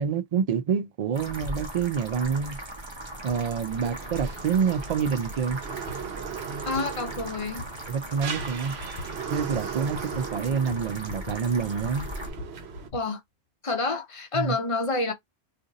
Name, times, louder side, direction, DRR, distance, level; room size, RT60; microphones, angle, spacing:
voice 1, 0.0-2.6 3.2-5.6 7.9-8.8 9.3-12.1 14.3-14.5, right 6 dB, 55° right, 0.4 m, -27 dB
sound 1, 1.1-12.3, right 1 dB, 30° right, 0.8 m, -39 dB
sound 2, 1.4-1.6 2.4-2.5 3.3-3.4 4.1-4.2 5.0-5.2 5.9-6.0 6.7-6.9 7.6-7.7 8.4-8.5 8.8-9.1 9.4-9.7 9.9-10.2 10.5-11.4 11.6-13.0, left 3 dB, 75° left, 0.8 m, -40 dB
sound 3, 3.7-12.9, right 6 dB, 80° right, 0.9 m, -38 dB
voice 2, 6.6-7.6 12.9-13.2 13.6-15.1, left 3 dB, 35° left, 0.6 m, -28 dB
2.5 x 2.5 x 3.9 m
omnidirectional pair, 1.1 m